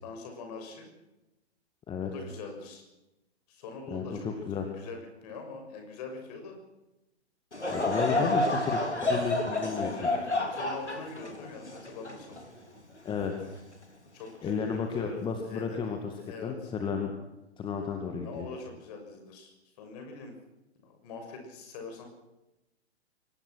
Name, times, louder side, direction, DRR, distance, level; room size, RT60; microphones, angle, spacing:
voice 1, 0.0-0.9 2.0-2.8 3.5-4.3 4.8-6.6 8.0-8.6 9.8-12.4 14.1-15.8 16.2-16.7 18.2-20.3 20.8-22.1, left 4 dB, 35° left, 4 dB, 6.6 m, -43 dB
voice 2, 3.9-4.7 7.7-9.9 13.0-13.5 14.4-16.1 16.4-16.5 16.8-17.1 17.6-18.5, left 6 dB, 15° left, 4 dB, 2.1 m, -32 dB
Laughter / Crowd, 7.5-13.0 13.5-13.6 14.4-14.7, left 2 dB, 80° left, 4.0 m, -30 dB
24.0 x 19.5 x 6.3 m, 0.96 s
figure-of-eight pair, 120°, 34 cm